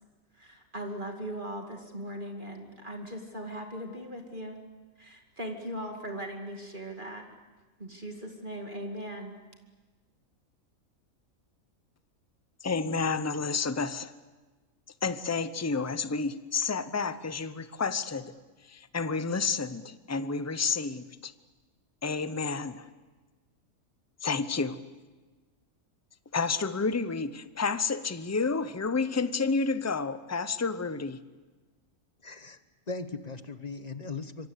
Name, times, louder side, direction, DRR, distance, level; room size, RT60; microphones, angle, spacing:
voice 1, 0.4-4.6 5.0-7.2 7.8-9.4, right 1 dB, 35° right, 3 dB, 2.5 m, -39 dB
voice 2, 12.6-14.1 15.0-18.3 18.7-21.3 22.0-22.9 24.2-24.8 26.3-31.2, left 4 dB, 15° left, 13 dB, 0.6 m, -30 dB
voice 3, 32.2-32.6 32.9-34.5, left 3 dB, 30° left, 11 dB, 1.1 m, -38 dB
26.0 x 23.5 x 8.3 m, 1.3 s
omnidirectional pair, 1.5 m